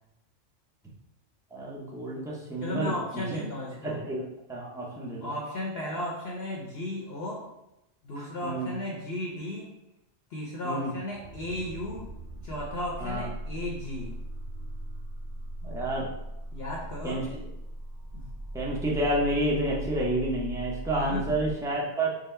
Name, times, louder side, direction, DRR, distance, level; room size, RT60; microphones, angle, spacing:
voice 1, 1.5-3.5 3.8-5.3 8.2-8.7 10.6-10.9 13.0-13.3 15.6-16.1 17.0-17.2 18.5-22.1, right 1 dB, 5° right, -4 dB, 0.4 m, -30 dB
voice 2, 2.6-4.0 5.2-7.5 8.0-9.7 10.3-12.1 12.4-14.2 16.5-17.2 18.1-18.3 21.1-21.4, left 1 dB, 60° left, -3 dB, 0.9 m, -35 dB
sound 1, 11.0-21.5, right 1 dB, 45° right, 0.6 m, -39 dB
3.8 x 2.1 x 4.3 m, 0.87 s
omnidirectional pair, 1.3 m